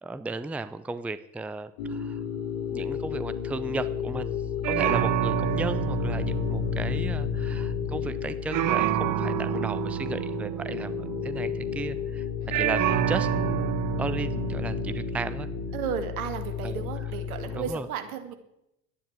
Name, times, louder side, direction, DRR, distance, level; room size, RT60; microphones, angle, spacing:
voice 1, 0.0-2.2 2.7-12.2 12.6-15.5 16.6-16.9 17.4-17.9, right 3 dB, 5° right, 14 dB, 0.6 m, -35 dB
sound 1, 1.8-17.7, left 9 dB, 60° left, 3.4 m, -32 dB
sound 2, 4.6-8.2 8.5-12.1 12.5-15.8, right 14 dB, 45° right, 1.0 m, -29 dB
voice 2, 15.7-18.4, right 7 dB, 70° right, 7 dB, 2.3 m, -34 dB
12.0 x 10.0 x 8.2 m, 0.86 s
hypercardioid pair, 75°, 45 cm